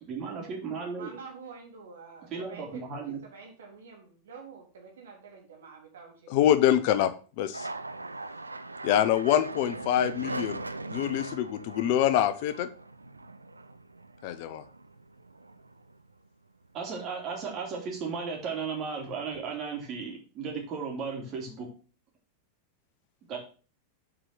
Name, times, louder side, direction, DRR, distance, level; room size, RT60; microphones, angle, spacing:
voice 1, 0.1-1.1 2.3-3.2 16.7-21.7 23.3-23.4, right 5 dB, 35° right, -1 dB, 3.1 m, -35 dB
voice 2, 0.7-6.4, right 5 dB, 65° right, 1 dB, 2.7 m, -48 dB
voice 3, 6.3-7.7 8.8-10.6 10.9-12.7 14.2-14.6, left 11 dB, 45° left, 13 dB, 0.8 m, -25 dB
sound 1, 7.5-16.3 16.6-17.4 17.7-18.6, right 2 dB, 80° right, 0.5 m, -41 dB
7.6 x 5.0 x 5.7 m, 0.37 s
figure-of-eight pair, 90°, 0 cm